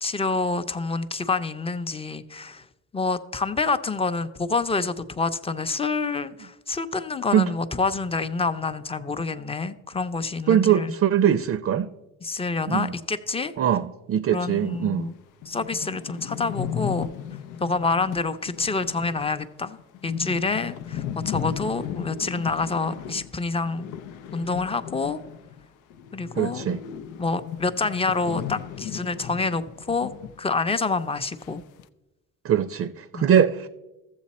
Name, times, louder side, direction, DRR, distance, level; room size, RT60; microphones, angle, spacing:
voice 1, 0.0-2.6 2.9-10.9 12.2-13.5 14.3-15.1 15.5-17.1 17.6-23.9 24.3-25.2 26.1-26.7 27.2-30.1 30.4-31.6 33.1-33.3, left 4 dB, 20° left, 0.6 m, -27 dB
voice 2, 10.5-11.9 12.7-12.9 13.6-15.1 26.4-26.8 32.4-33.7, right 9 dB, 50° right, 0.5 m, -22 dB
sound 1, 14.7-14.8 15.2-15.3 15.4-25.7 25.9-30.4 30.7-30.8 31.4-31.8, left 9 dB, 90° left, 0.6 m, -36 dB
13.5 x 7.5 x 4.2 m
cardioid pair, 90°, 30 cm